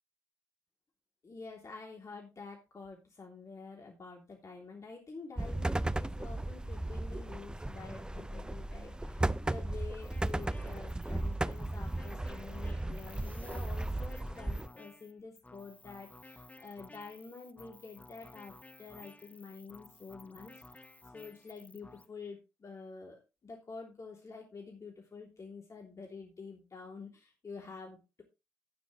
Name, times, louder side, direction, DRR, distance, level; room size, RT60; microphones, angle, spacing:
voice 1, 1.2-20.9 21.1-28.2, left 4 dB, 35° left, 0 dB, 3.4 m, -48 dB
sound 1, 5.4-14.7, right 1 dB, 10° right, 0.6 m, -36 dB
sound 2, 10.0-22.1, left 2 dB, 15° left, 1.0 m, -55 dB
12.5 x 9.5 x 3.3 m, 0.26 s
hypercardioid pair, 45°, 9 cm